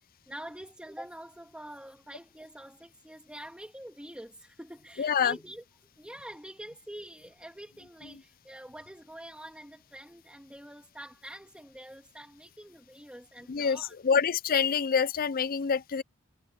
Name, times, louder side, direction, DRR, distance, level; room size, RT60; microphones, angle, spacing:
voice 1, 0.3-5.6 6.0-14.0, right 1 dB, 5° right, 2.6 m, -46 dB
voice 2, 5.0-5.4 13.5-16.0, left 6 dB, 45° left, 0.5 m, -26 dB
head